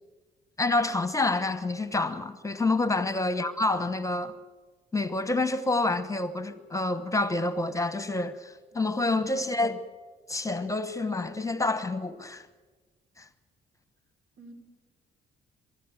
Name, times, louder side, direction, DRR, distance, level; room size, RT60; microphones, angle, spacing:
voice 1, 0.6-4.3 4.9-9.8 10.3-12.5 13.2-13.3, left 2 dB, 15° left, 1.1 m, -28 dB
voice 2, 8.7-9.4 14.4-14.5, right 2 dB, 85° right, 5.4 m, -51 dB
23.0 x 13.5 x 9.0 m
cardioid pair, 90°, 20 cm